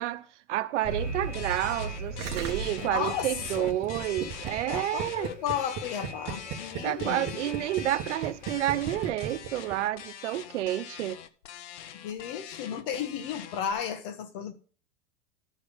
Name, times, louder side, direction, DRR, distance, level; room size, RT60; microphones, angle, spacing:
voice 1, 0.0-5.3 6.8-11.2, right 14 dB, 80° right, 0.9 m, -30 dB
Alarm, 0.8-8.5, right 1 dB, 20° left, 2.1 m, -40 dB
sound 1, 1.3-13.7, left 10 dB, 80° left, 0.9 m, -44 dB
Gurgling, 2.2-9.8 10.0-10.1, right 9 dB, 35° right, 1.4 m, -36 dB
voice 2, 2.8-3.8 4.7-7.5 11.9-14.5, left 8 dB, 50° left, 1.4 m, -34 dB
12.0 x 4.6 x 5.3 m
supercardioid pair, 145°, 35 cm